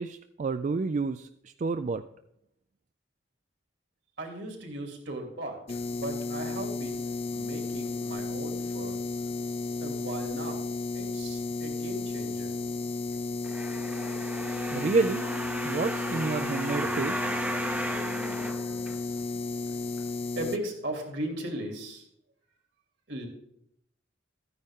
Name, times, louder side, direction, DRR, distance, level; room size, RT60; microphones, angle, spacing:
voice 1, 0.0-2.0 14.7-15.3 15.6-17.3, right 4 dB, 40° right, 10 dB, 0.3 m, -29 dB
voice 2, 4.2-7.0 7.3-9.0 9.8-10.6 10.9-12.6 20.3-22.0 23.1-23.3, right 1 dB, 70° right, 2 dB, 2.7 m, -37 dB
sound 1, 5.7-20.6, left 3 dB, 30° left, 0.4 m, -33 dB
sound 2, 13.4-19.4 20.0-20.1, right 1 dB, 10° right, 0.6 m, -35 dB
13.5 x 9.7 x 3.6 m, 0.76 s
head